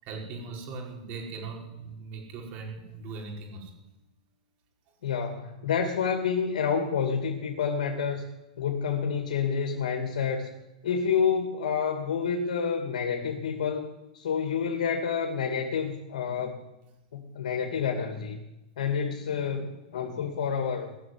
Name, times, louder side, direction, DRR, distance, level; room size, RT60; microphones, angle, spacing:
voice 1, 0.0-3.7, right 4 dB, 40° right, 0 dB, 5.4 m, -39 dB
voice 2, 5.0-8.3 8.6-10.5 10.8-16.6 17.1-18.4 18.8-19.7 19.9-20.9, left 6 dB, 70° left, 4 dB, 2.6 m, -28 dB
20.0 x 7.2 x 9.7 m, 0.98 s
hypercardioid pair, 130°, 4 cm